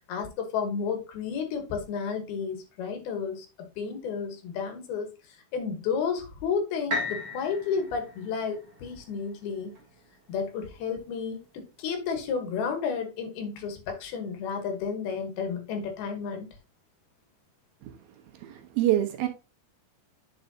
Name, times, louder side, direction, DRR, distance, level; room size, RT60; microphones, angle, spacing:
voice 1, 0.1-5.1 5.5-9.7 10.3-16.5, left 6 dB, 75° left, 3.0 m, -32 dB
sound 1, 6.9-10.8 11.4-11.5, left 1 dB, 55° right, 0.8 m, -37 dB
voice 2, 18.3-19.3, right 13 dB, 75° right, 2.5 m, -26 dB
9.2 x 5.3 x 2.7 m
omnidirectional pair, 4.6 m